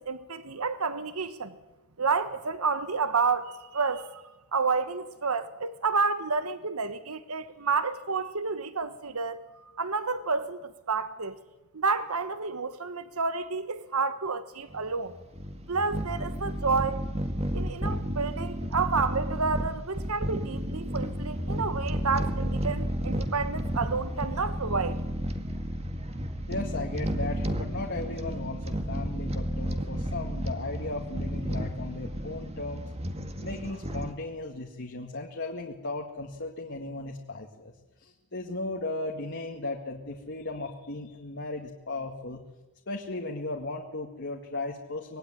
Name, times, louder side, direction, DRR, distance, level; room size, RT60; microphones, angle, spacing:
voice 1, 0.0-1.5 2.0-4.2 4.5-9.4 9.8-11.4 11.7-15.1 15.7-17.1 17.5-25.0, right 4 dB, 80° right, 1.3 m, -30 dB
sound 1, 14.7-34.1, equal, 30° right, 2.0 m, -32 dB
voice 2, 26.5-32.9 33.4-37.7 38.0-42.4 42.9-45.2, left 2 dB, 55° left, 2.2 m, -36 dB
25.5 x 20.0 x 9.9 m
head